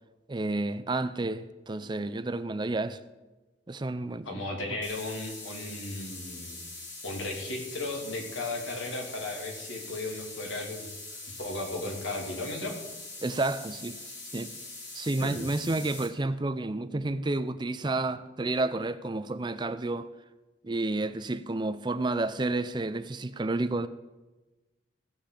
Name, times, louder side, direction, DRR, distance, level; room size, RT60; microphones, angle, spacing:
voice 1, 0.3-3.0 3.7-4.4 13.2-14.1 14.3-14.5 14.9-20.1 20.6-23.9, right 2 dB, 25° right, 0.5 m, -30 dB
voice 2, 4.2-6.6 7.0-10.8 11.4-12.7 15.2-15.5, left 2 dB, 80° left, 2.9 m, -35 dB
sound 1, 4.8-16.1, left 3 dB, 60° left, 3.5 m, -43 dB
16.5 x 5.8 x 8.3 m
head